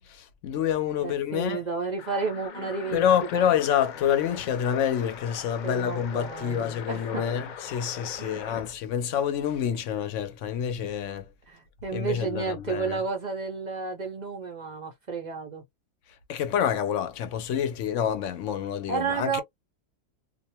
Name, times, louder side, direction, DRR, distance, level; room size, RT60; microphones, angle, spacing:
voice 1, 0.1-1.7 2.9-11.3 11.9-13.0 16.3-19.4, left 9 dB, 70° left, 0.9 m, -27 dB
voice 2, 1.0-3.0 3.3-3.4 5.6-7.3 8.2-8.4 11.5-15.6 18.9-19.4, right 5 dB, 50° right, 0.5 m, -32 dB
sound 1, 2.0-8.7, left 7 dB, 90° left, 0.4 m, -41 dB
2.5 x 2.1 x 2.8 m
omnidirectional pair, 1.4 m